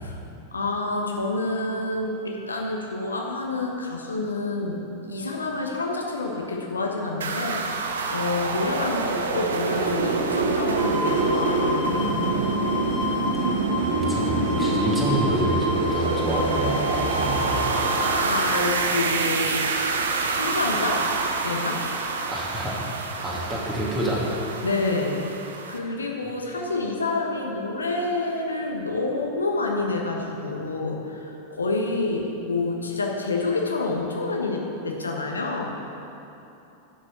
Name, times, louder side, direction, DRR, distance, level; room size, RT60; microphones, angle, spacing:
voice 1, 0.5-12.1 18.2-19.6 20.3-21.1 21.4-21.9 24.6-25.2 25.7-35.8, left 3 dB, 75° left, 0 dB, 1.2 m, -28 dB
sound 1, 7.2-25.8, right 3 dB, 65° right, 0.8 m, -26 dB
sound 2, 10.8-18.5, left 3 dB, 30° left, 2.2 m, -31 dB
voice 2, 13.4-17.7 22.3-24.2, right 1 dB, 10° right, -5 dB, 2.6 m, -28 dB
10.0 x 6.8 x 6.8 m, 2.9 s
figure-of-eight pair, 90°, 0 cm